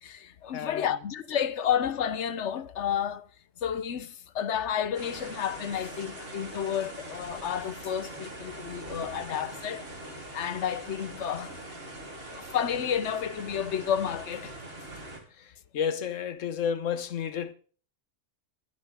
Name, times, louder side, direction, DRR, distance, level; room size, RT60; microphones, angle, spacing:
voice 1, 0.0-3.3 3.6-9.9 10.3-11.6 12.3-14.5, left 8 dB, 70° left, 1.1 m, -31 dB
voice 2, 0.5-1.0 15.3-17.5, left 7 dB, 85° left, 1.3 m, -32 dB
sound 1, 4.9-15.2, right 1 dB, 50° right, 3.7 m, -42 dB
23.5 x 8.1 x 3.6 m
omnidirectional pair, 1.3 m